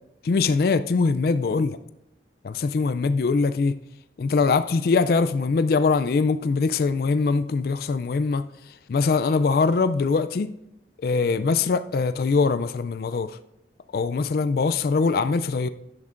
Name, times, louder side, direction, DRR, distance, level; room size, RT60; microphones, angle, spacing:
voice 1, 0.3-1.8 2.4-3.7 4.2-8.4 8.9-10.5 11.0-13.3 13.9-15.7, left 4 dB, 55° left, 12 dB, 0.3 m, -22 dB
12.0 x 10.5 x 2.5 m, 0.86 s
head